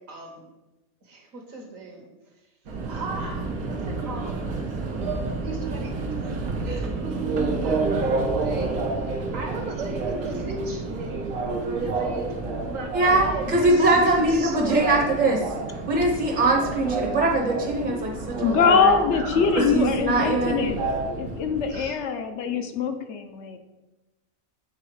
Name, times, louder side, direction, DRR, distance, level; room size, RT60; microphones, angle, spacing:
voice 1, 0.1-0.5 1.0-2.0 2.7-4.4 5.4-5.9 6.2-6.4 6.6-8.7 9.1-11.3 11.6-12.3 12.6-15.1 18.0-18.3 19.1-19.8 21.7-22.0, right 2 dB, 70° right, 3 dB, 1.5 m, -36 dB
Subway metro underground, 2.7-21.9, right 3 dB, 90° right, 1.4 m, -30 dB
voice 2, 12.9-15.4 15.9-18.9 19.6-20.7, right 2 dB, 40° right, 0 dB, 0.9 m, -22 dB
voice 3, 18.4-20.8 21.2-23.6, left 6 dB, 60° left, 7 dB, 0.9 m, -23 dB
7.8 x 3.9 x 4.7 m, 1.1 s
omnidirectional pair, 1.4 m